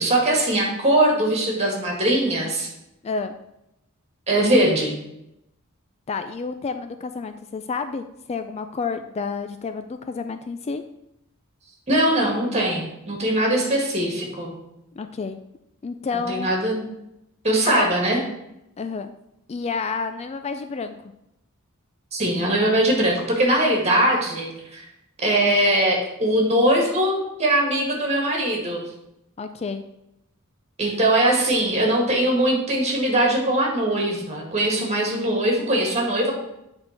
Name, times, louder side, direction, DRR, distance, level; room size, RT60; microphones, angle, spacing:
voice 1, 0.0-2.7 4.3-4.9 11.9-14.5 16.3-16.9 17.4-18.2 22.1-24.8 25.2-28.8 30.8-36.3, right 1 dB, 30° right, 0 dB, 2.0 m, -21 dB
voice 2, 3.0-3.4 6.1-10.8 15.0-15.4 15.8-16.5 17.7-17.9 18.8-19.1 19.5-21.0 29.4-29.8, left 4 dB, 30° left, 9 dB, 0.3 m, -29 dB
8.7 x 3.8 x 5.9 m, 0.86 s
head